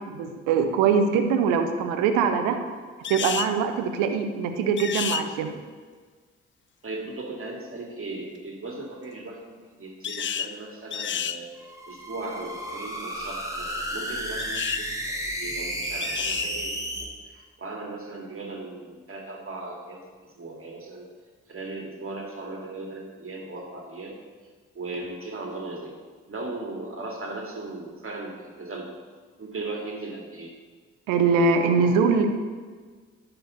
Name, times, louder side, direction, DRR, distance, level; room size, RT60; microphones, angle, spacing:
voice 1, 0.1-2.6 3.1-5.5 31.1-32.3, right 5 dB, 80° right, 7 dB, 0.8 m, -22 dB
sound 1, 3.0-3.5 4.8-5.2 10.0-10.5 10.9-11.4 14.4-14.8 16.0-16.5, left 9 dB, 40° left, 0.5 m, -30 dB
voice 2, 6.8-11.5 11.9-21.1 21.5-24.1 24.7-25.9 26.3-28.9 29.4-30.5, right 2 dB, 45° right, 1 dB, 2.3 m, -37 dB
sound 2, 11.6-17.0, equal, 10° right, 2.0 m, -32 dB
10.5 x 4.5 x 6.6 m, 1.5 s
hypercardioid pair, 45°, 31 cm